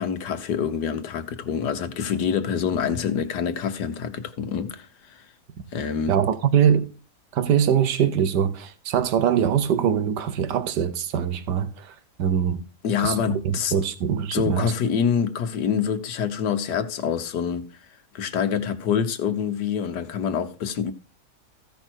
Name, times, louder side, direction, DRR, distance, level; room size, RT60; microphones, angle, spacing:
voice 1, 0.0-5.3 5.7-6.1 12.8-13.7 14.3-17.7 18.1-20.9, left 7 dB, 80° left, 1.7 m, -26 dB
voice 2, 6.1-6.9 7.3-12.6 13.0-14.7, right 8 dB, 85° right, 1.5 m, -23 dB
15.0 x 5.4 x 4.5 m
omnidirectional pair, 1.8 m